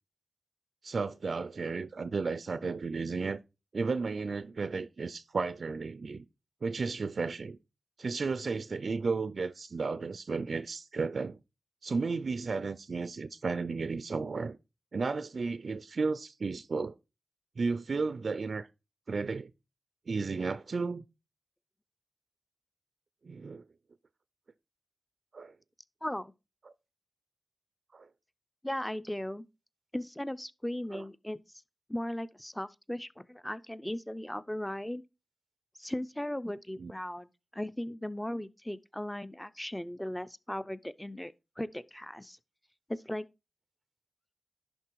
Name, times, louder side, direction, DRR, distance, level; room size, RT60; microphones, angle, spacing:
voice 1, 0.8-3.4 3.7-6.2 6.6-7.6 8.0-11.4 11.8-14.6 14.9-16.9 17.6-18.7 19.1-19.5 20.1-21.0 23.2-23.6 25.3-25.5 27.9-28.1 30.9-31.0 36.8-36.9, right 4 dB, 65° right, 0.4 m, -33 dB
voice 2, 26.0-26.3 28.6-29.5 29.9-31.4 31.9-35.0 35.8-37.3 37.5-42.4 42.9-43.3, left 1 dB, 10° left, 0.5 m, -37 dB
11.0 x 3.7 x 4.6 m
cardioid pair, 65°, 0 cm